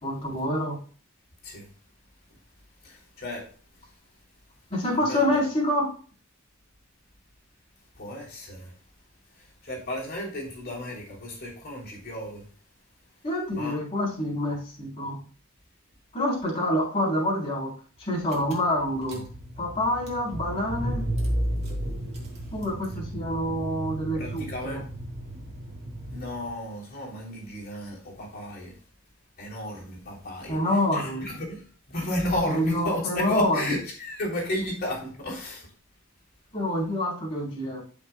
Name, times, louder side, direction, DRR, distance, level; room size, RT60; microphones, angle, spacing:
voice 1, 0.0-0.8 4.7-5.9 13.2-15.2 16.1-17.7 18.0-19.2 19.6-21.0 22.5-24.8 30.5-31.3 32.5-33.7 36.5-37.8, left 1 dB, 30° left, -5 dB, 3.9 m, -27 dB
voice 2, 2.8-3.4 4.9-5.4 8.0-8.7 9.6-12.4 13.5-13.8 24.1-24.8 26.1-28.7 29.4-30.6 30.9-31.6 31.9-35.7, left 1 dB, 45° left, -3 dB, 3.3 m, -32 dB
Car / Engine, 18.0-18.1 18.3-26.7, right 1 dB, 30° right, 2.5 m, -33 dB
13.0 x 6.0 x 2.3 m, 0.42 s
head